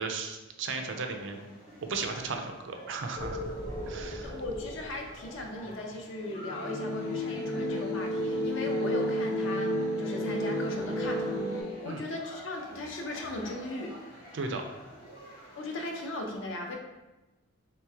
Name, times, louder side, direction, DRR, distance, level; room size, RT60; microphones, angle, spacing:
voice 1, 0.0-1.4 1.8-3.5 3.9-4.4 11.8-12.0 14.3-14.6, right 4 dB, 60° right, 4 dB, 0.4 m, -35 dB
sound 1, 0.8-16.0, left 1 dB, 45° left, 1.3 m, -49 dB
sound 2, 3.2-5.3 6.2-11.6, equal, 15° left, 0.5 m, -32 dB
voice 2, 4.2-14.0 15.6-16.8, left 2 dB, 60° left, 2 dB, 0.6 m, -38 dB
3.2 x 3.0 x 3.4 m, 1.1 s
head